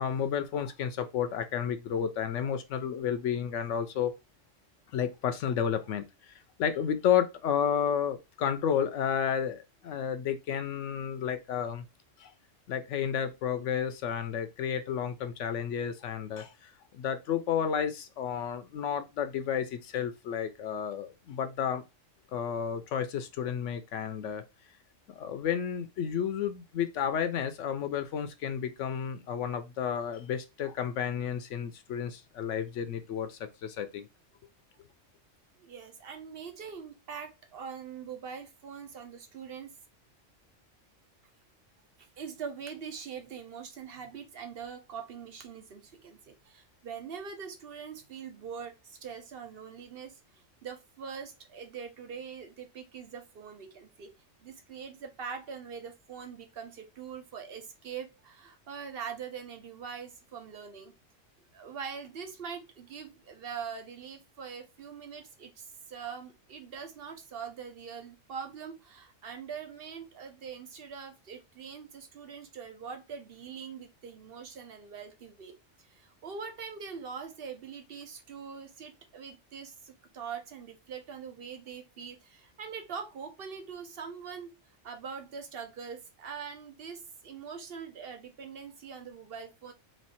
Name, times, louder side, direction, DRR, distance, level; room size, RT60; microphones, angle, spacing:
voice 1, 0.0-4.1 4.9-6.0 6.6-11.8 12.2-12.3 12.7-21.8 22.3-24.4 25.1-34.1, left 8 dB, 75° left, 0.9 m, -31 dB
voice 2, 35.6-39.7 42.0-54.1 54.4-60.9 61.5-84.5 84.8-89.7, right 6 dB, 55° right, 1.0 m, -43 dB
3.2 x 3.1 x 4.2 m
omnidirectional pair, 1.3 m